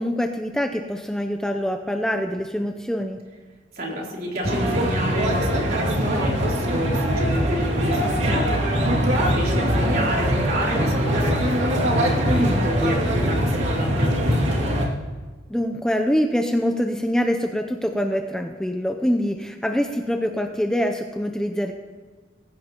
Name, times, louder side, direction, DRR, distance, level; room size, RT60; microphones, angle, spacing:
voice 1, 0.0-3.2 12.3-12.7 15.5-21.7, equal, 5° left, 5 dB, 0.5 m, -24 dB
voice 2, 3.7-14.4, equal, 50° right, -3 dB, 3.4 m, -29 dB
sound 1, 4.4-14.9, equal, 85° right, 2.3 m, -22 dB
20.5 x 15.5 x 3.0 m, 1.4 s
head